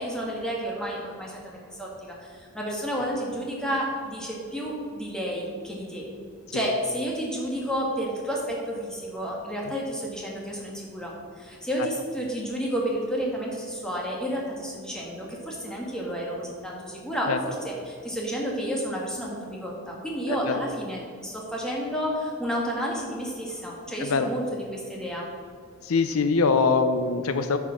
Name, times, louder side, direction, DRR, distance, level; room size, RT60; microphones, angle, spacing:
voice 1, 0.0-6.1 6.5-25.3, equal, 5° left, -3 dB, 1.6 m, -31 dB
voice 2, 25.9-27.6, left 4 dB, 90° left, 9 dB, 0.6 m, -23 dB
9.2 x 5.0 x 6.4 m, 2.1 s
head